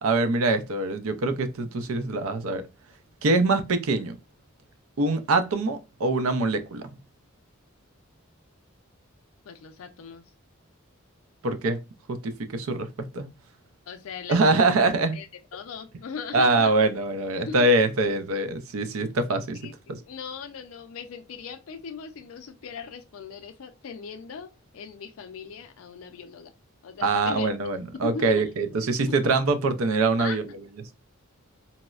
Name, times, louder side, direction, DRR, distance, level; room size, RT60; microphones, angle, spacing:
voice 1, 0.0-2.6 3.2-4.2 5.0-6.9 11.4-11.8 12.1-13.3 14.3-15.2 16.3-19.6 19.9-20.0 27.0-30.4, right 2 dB, 90° right, 0.5 m, -24 dB
voice 2, 9.5-10.2 13.9-14.7 15.1-15.3 15.5-16.7 17.5-17.7 19.6-26.5 26.8-27.5 28.0-28.4 29.1-29.2 30.2-30.4, left 6 dB, 75° left, 0.4 m, -39 dB
4.1 x 2.0 x 2.3 m
head